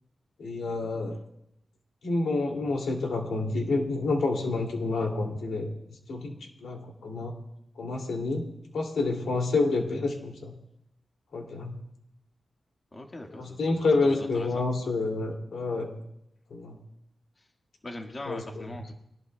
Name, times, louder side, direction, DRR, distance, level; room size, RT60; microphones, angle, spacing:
voice 1, 0.4-1.2 2.0-5.7 6.1-6.3 6.6-7.3 7.8-8.5 8.7-10.5 11.3-11.8 13.3-16.0 16.5-16.8 18.3-18.7, left 3 dB, 85° left, 1 dB, 2.6 m, -28 dB
voice 2, 12.9-14.6 17.4-17.5 17.8-18.9, left 1 dB, 30° left, 2 dB, 1.7 m, -41 dB
24.0 x 19.0 x 2.3 m, 0.77 s
wide cardioid pair, 135°, 0 cm